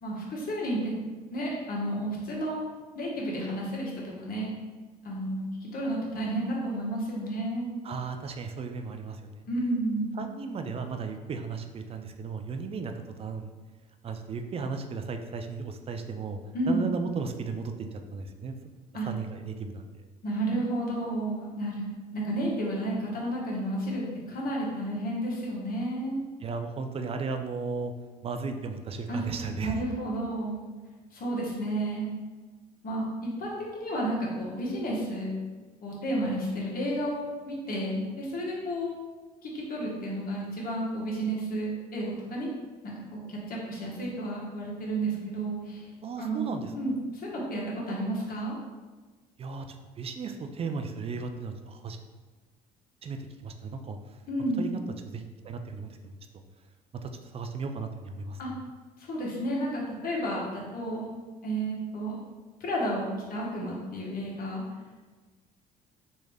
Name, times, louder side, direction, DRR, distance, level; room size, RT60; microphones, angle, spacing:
voice 1, 0.0-0.9 1.3-2.7 2.9-4.5 5.0-7.7 9.5-10.2 16.5-16.8 18.9-19.1 20.2-26.2 29.1-29.2 29.6-30.6 31.1-32.1 32.8-35.4 35.8-39.0 39.4-42.5 42.8-45.9 46.2-48.6 54.3-54.6 58.4-58.5 59.0-62.2 62.6-64.6, right 1 dB, 45° left, -4 dB, 1.1 m, -32 dB
voice 2, 7.8-9.4 10.2-12.9 13.2-13.5 14.0-16.4 16.7-18.6 19.0-19.8 26.4-27.9 28.2-29.8 46.0-46.7 49.4-52.0 53.0-54.0 54.6-54.8 55.1-56.2 56.9-58.4, right 4 dB, 30° right, 6 dB, 0.4 m, -35 dB
3.1 x 2.6 x 3.4 m, 1.3 s
hypercardioid pair, 55°, 20 cm